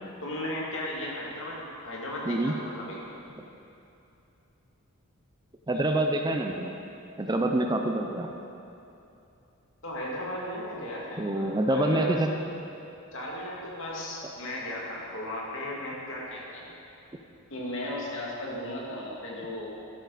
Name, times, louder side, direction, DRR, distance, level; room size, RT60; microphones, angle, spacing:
voice 1, 0.2-3.0 9.8-12.2 13.1-16.7 17.5-19.8, left 1 dB, 60° left, -4 dB, 2.3 m, -35 dB
voice 2, 5.7-6.7 7.2-8.3 11.2-12.3, right 1 dB, 20° right, 3 dB, 0.5 m, -26 dB
13.0 x 11.0 x 4.1 m, 2.8 s
head